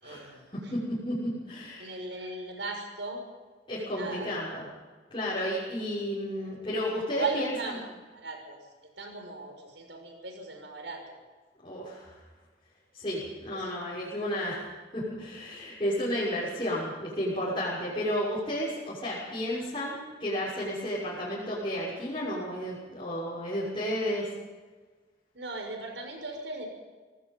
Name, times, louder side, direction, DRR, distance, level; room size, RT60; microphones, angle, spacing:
voice 1, 0.0-0.7 1.8-3.3 3.9-4.5 6.4-6.5 7.1-7.8 8.1-8.6 9.0-11.2 13.5-14.0 25.3-26.7, right 3 dB, 85° right, 3 dB, 6.2 m, -38 dB
voice 2, 0.7-1.9 3.7-4.7 5.1-7.5 11.6-12.1 12.9-14.6 14.9-19.9 20.2-24.3, equal, 25° left, -8 dB, 6.5 m, -32 dB
26.0 x 18.5 x 5.6 m, 1.3 s
head